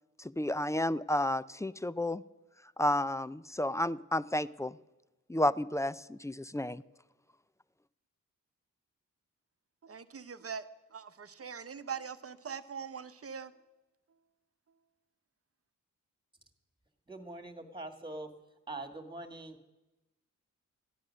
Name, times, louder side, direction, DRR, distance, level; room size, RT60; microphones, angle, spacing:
voice 1, 0.2-2.2 2.8-4.8 5.3-6.8, left 1 dB, 10° left, 17 dB, 0.4 m, -31 dB
voice 2, 9.8-10.6 10.9-13.5, right 6 dB, 45° right, 12 dB, 0.9 m, -42 dB
voice 3, 17.1-18.3 18.7-19.7, right 2 dB, 15° right, 8 dB, 2.0 m, -43 dB
13.5 x 9.8 x 6.4 m, 1.0 s
cardioid pair, 45°, 34 cm